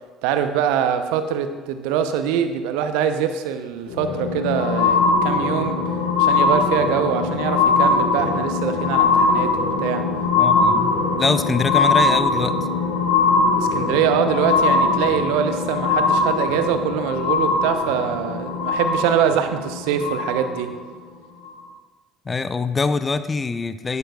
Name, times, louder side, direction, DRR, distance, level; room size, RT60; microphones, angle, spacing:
voice 1, 0.2-5.8 6.2-9.5 9.8-10.0 13.6-20.7, right 8 dB, 65° right, 9 dB, 0.8 m, -23 dB
sound 1, 3.9-20.7 21.5-21.6, left 4 dB, 75° left, 1.2 m, -21 dB
voice 2, 10.4-12.5 22.3-24.0, left 4 dB, 25° left, 12 dB, 0.7 m, -24 dB
16.5 x 11.5 x 2.4 m, 1.3 s
figure-of-eight pair, 55°, 0 cm